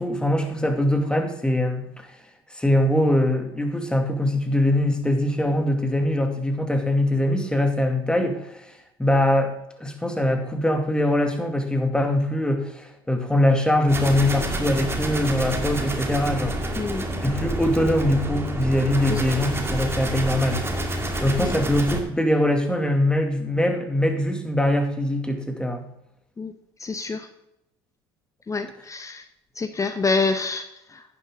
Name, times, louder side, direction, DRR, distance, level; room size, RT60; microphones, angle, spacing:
voice 1, 0.0-2.1 2.5-8.6 9.0-16.5 17.2-20.6 21.2-25.8, left 1 dB, 5° left, 5 dB, 2.4 m, -22 dB
sound 1, 13.9-22.0, right 1 dB, 20° right, 2.2 m, -28 dB
voice 2, 16.8-17.1 19.1-19.2 21.4-21.5 26.4-26.5 26.8-27.3 28.5-29.2 29.6-31.0, left 4 dB, 25° left, 8 dB, 1.0 m, -27 dB
11.0 x 9.8 x 3.8 m, 0.81 s
hypercardioid pair, 75°, 13 cm